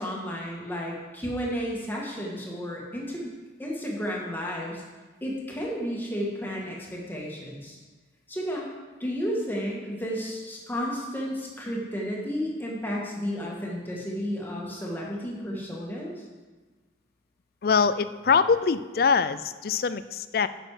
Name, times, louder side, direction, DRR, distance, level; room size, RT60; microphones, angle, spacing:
voice 1, 0.0-3.3 3.6-4.8 5.2-7.8 8.3-8.7 9.0-16.2, equal, 10° left, -3 dB, 1.8 m, -32 dB
voice 2, 17.6-20.5, left 5 dB, 55° left, 14 dB, 0.4 m, -23 dB
10.5 x 6.6 x 4.9 m, 1.3 s
head